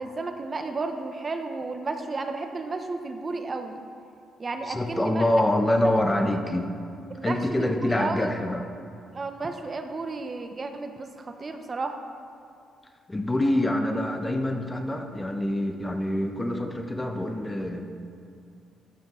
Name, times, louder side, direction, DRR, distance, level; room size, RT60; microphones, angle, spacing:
voice 1, 0.0-3.8 4.4-5.3 5.6-6.0 7.1-8.4 9.1-12.0, right 3 dB, 35° right, 6 dB, 0.6 m, -33 dB
voice 2, 4.7-6.7 7.2-8.7 13.1-17.9, left 1 dB, 15° left, 5 dB, 0.7 m, -25 dB
12.5 x 5.8 x 3.0 m, 2.3 s
cardioid pair, 90°, 0 cm